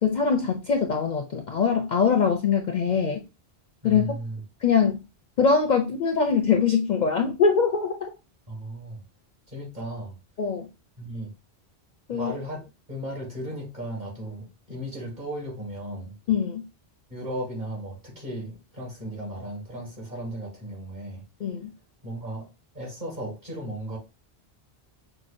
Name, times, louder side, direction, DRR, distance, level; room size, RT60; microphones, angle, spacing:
voice 1, 0.0-3.2 3.8-4.1 4.6-5.0 5.4-8.1 10.4-10.7 12.1-12.3 16.3-16.6 21.4-21.7, left 6 dB, 55° left, 0.5 m, -23 dB
voice 2, 3.8-4.4 8.5-9.0 9.5-10.2 11.0-11.3 12.1-16.2 17.1-21.2 22.0-22.5 22.7-24.0, right 1 dB, 45° right, 1.9 m, -35 dB
5.8 x 2.1 x 2.5 m
omnidirectional pair, 1.1 m